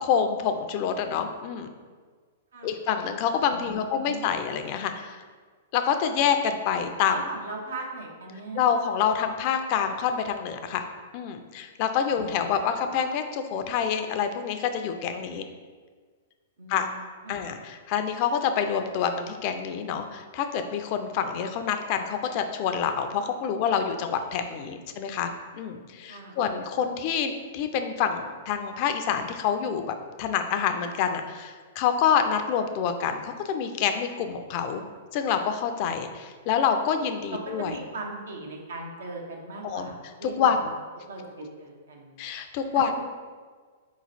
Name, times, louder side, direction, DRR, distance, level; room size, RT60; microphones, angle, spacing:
voice 1, 0.0-1.7 2.6-5.2 5.7-7.2 8.5-10.8 11.1-15.4 16.7-16.9 17.3-34.8 35.1-37.8 39.6-39.9 40.2-40.7 42.2-42.9, left 7 dB, 45° left, 7 dB, 0.4 m, -27 dB
voice 2, 3.5-4.3 7.1-8.6 12.1-12.3 16.6-17.5 26.1-26.4 37.3-40.5 41.1-42.3 42.7-43.1, right 2 dB, 80° right, -1 dB, 1.0 m, -39 dB
4.0 x 3.0 x 4.1 m, 1.5 s
hypercardioid pair, 120°, 0 cm